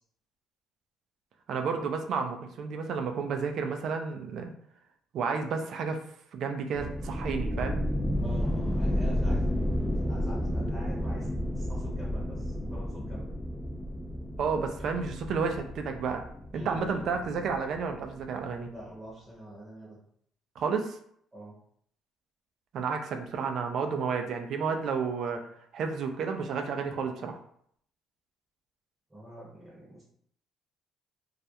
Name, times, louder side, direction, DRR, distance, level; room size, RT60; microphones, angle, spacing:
voice 1, 1.5-4.5 5.1-6.0 6.3-7.8 14.4-16.2 16.5-18.7 20.6-21.0 22.7-25.4 25.7-27.4, right 5 dB, 65° right, 5 dB, 0.4 m, -31 dB
sound 1, 6.7-18.2, equal, 5° left, 0.4 m, -32 dB
voice 2, 8.2-9.6 10.1-11.3 11.6-13.3 16.5-17.3 18.7-20.0 21.3-21.5 29.1-30.1, right 1 dB, 15° right, -6 dB, 0.8 m, -45 dB
2.3 x 2.1 x 2.8 m, 0.66 s
cardioid pair, 100°, 0 cm